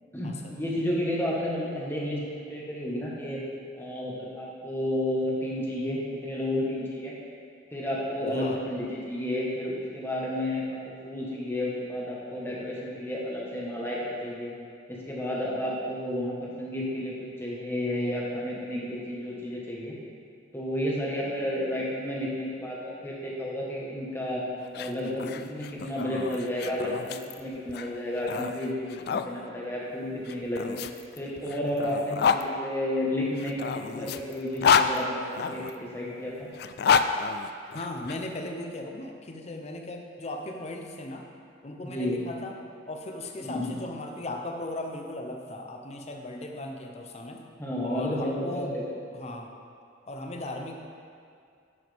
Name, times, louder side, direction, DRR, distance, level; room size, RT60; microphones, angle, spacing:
voice 1, 0.1-3.4 3.8-7.1 7.7-10.8 11.0-14.5 14.9-19.9 20.5-24.4 24.7-30.8 31.2-36.5 41.8-42.2 43.4-43.7 47.6-48.8, left 1 dB, 10° left, -5 dB, 1.4 m, -31 dB
voice 2, 8.3-8.6 37.7-41.3 41.6-42.6 42.9-47.4 47.8-48.7 49.1-49.5 50.1-50.9, left 1 dB, 35° left, 3 dB, 0.7 m, -37 dB
sound 1, 24.6-29.3 30.2-32.4 33.4-35.7 36.5-38.2, left 6 dB, 55° left, 0.3 m, -28 dB
9.6 x 7.6 x 3.5 m, 2.3 s
head